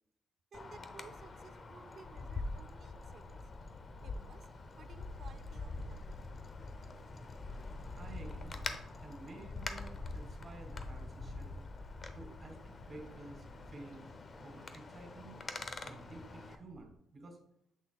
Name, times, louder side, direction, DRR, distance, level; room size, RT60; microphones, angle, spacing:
Wind, 0.5-16.6, left 3 dB, 40° left, 0.7 m, -45 dB
voice 1, 0.5-3.5 4.0-4.5 4.7-6.2, right 5 dB, 55° right, 11 dB, 0.6 m, -57 dB
Space rumble, 3.0-17.0, left 2 dB, 80° left, 1.6 m, -62 dB
voice 2, 7.9-8.7 9.0-11.6 12.1-15.4 15.8-17.4, right 3 dB, 40° right, 4 dB, 1.9 m, -52 dB
7.9 x 6.1 x 2.3 m, 0.74 s
cardioid pair, 90°, 0 cm